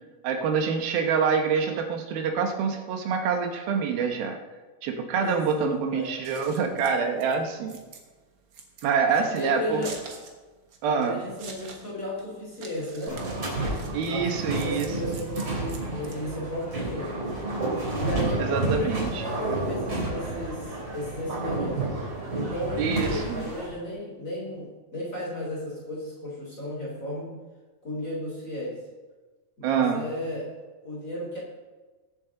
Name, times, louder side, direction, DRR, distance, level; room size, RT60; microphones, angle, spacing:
voice 1, 0.2-4.4 4.8-7.8 8.8-9.8 10.8-11.2 13.6-14.9 18.5-19.2 22.8-23.5 29.6-30.1, right 6 dB, 85° right, 4 dB, 3.0 m, -26 dB
voice 2, 5.2-6.2 9.2-10.2 10.8-13.2 14.1-17.3 17.9-21.8 22.3-27.4 27.8-28.8 29.6-30.6 30.8-31.4, left 1 dB, 20° left, -5 dB, 3.4 m, -34 dB
Scissors, 6.0-16.6, right 4 dB, 65° right, 1.1 m, -46 dB
sound 1, 13.1-23.7, right 2 dB, 35° right, 3.9 m, -30 dB
22.0 x 7.4 x 3.8 m, 1.3 s
omnidirectional pair, 4.2 m